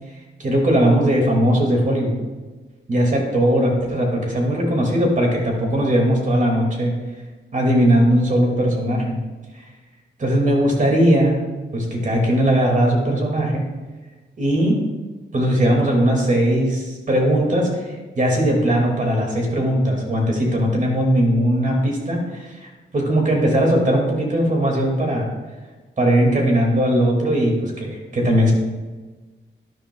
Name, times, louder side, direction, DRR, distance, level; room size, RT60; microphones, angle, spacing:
voice 1, 0.4-2.2 2.9-6.9 7.5-9.2 9.5-9.6 10.2-11.4 11.7-13.7 14.4-14.8 15.3-25.3 26.0-28.5, right 1 dB, 40° right, 0 dB, 2.2 m, -19 dB
12.0 x 11.0 x 2.3 m, 1.3 s
wide cardioid pair, 150°, 20 cm